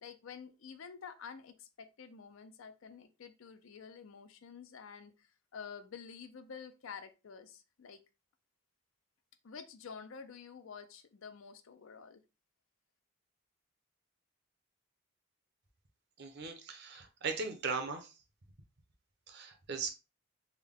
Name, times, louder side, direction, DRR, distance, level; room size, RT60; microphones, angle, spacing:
voice 1, 0.0-8.0 9.4-12.2, left 6 dB, 70° left, 10 dB, 0.5 m, -49 dB
voice 2, 16.2-18.1 19.3-19.9, right 4 dB, 55° right, 6 dB, 0.7 m, -38 dB
3.5 x 2.1 x 3.5 m, 0.28 s
head